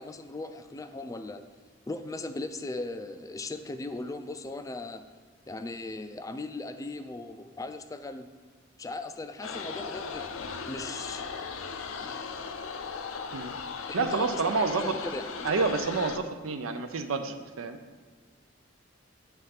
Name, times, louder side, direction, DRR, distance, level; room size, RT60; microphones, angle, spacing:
voice 1, 0.0-1.4 1.9-5.0 5.5-8.3 8.8-10.3 10.6-11.2 12.0-12.3 13.9-15.5, left 2 dB, 15° left, 9 dB, 0.3 m, -38 dB
sound 1, 9.4-16.2, left 5 dB, 80° left, 0.5 m, -37 dB
voice 2, 13.9-14.9 15.4-17.8, right 4 dB, 90° right, 6 dB, 0.5 m, -29 dB
9.0 x 3.2 x 5.7 m, 1.5 s
head